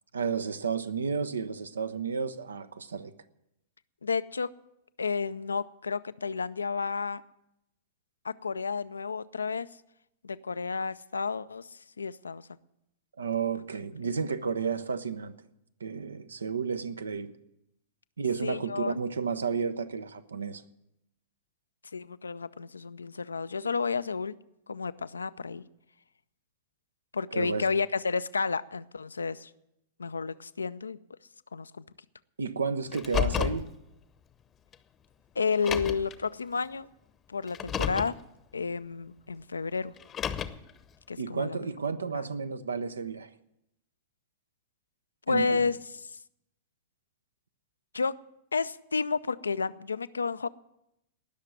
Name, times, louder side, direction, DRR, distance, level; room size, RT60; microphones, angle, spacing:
voice 1, 0.1-3.1 13.2-15.4 15.8-17.4 18.2-20.6 27.3-27.6 32.4-33.7 41.2-43.3 45.3-45.6, right 5 dB, 70° right, 0.8 m, -32 dB
voice 2, 4.0-4.5 5.0-7.2 8.2-9.7 10.2-12.5 18.4-18.9 21.9-24.3 24.7-25.6 27.1-29.5 30.0-31.0 31.5-31.8 35.4-36.9 37.3-38.2 38.5-39.9 41.1-41.7 42.1-42.3 45.3-46.2 47.9-48.2 48.5-50.5, left 5 dB, 75° left, 0.5 m, -31 dB
Car, 32.9-33.7 34.7-34.8 35.5-36.1 37.5-38.2 40.0-40.7, left 9 dB, 25° left, 0.9 m, -31 dB
19.0 x 6.6 x 9.5 m
figure-of-eight pair, 95°, 0 cm